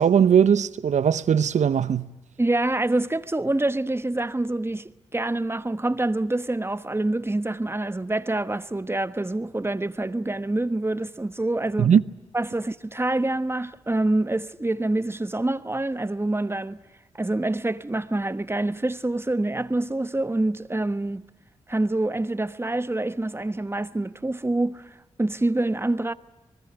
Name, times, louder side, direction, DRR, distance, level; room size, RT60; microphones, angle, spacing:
voice 1, 0.0-2.1 11.8-12.0, right 8 dB, 70° right, 0.8 m, -19 dB
voice 2, 2.4-11.9 12.3-16.8 17.1-21.2 21.7-24.9 25.2-26.1, right 2 dB, 20° right, 1.1 m, -26 dB
25.5 x 20.0 x 7.9 m
supercardioid pair, 40°, 13 cm